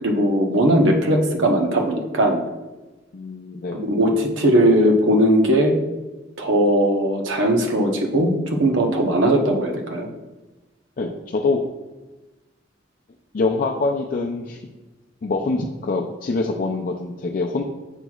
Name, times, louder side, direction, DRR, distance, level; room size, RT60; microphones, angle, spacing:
voice 1, 0.0-2.4 3.7-5.8 6.4-10.1, right 1 dB, 85° right, 1 dB, 1.0 m, -19 dB
voice 2, 3.1-3.9 11.0-11.6 13.3-14.6 15.2-17.6, left 3 dB, 45° left, 0 dB, 0.4 m, -24 dB
8.0 x 6.0 x 2.4 m, 1.1 s
head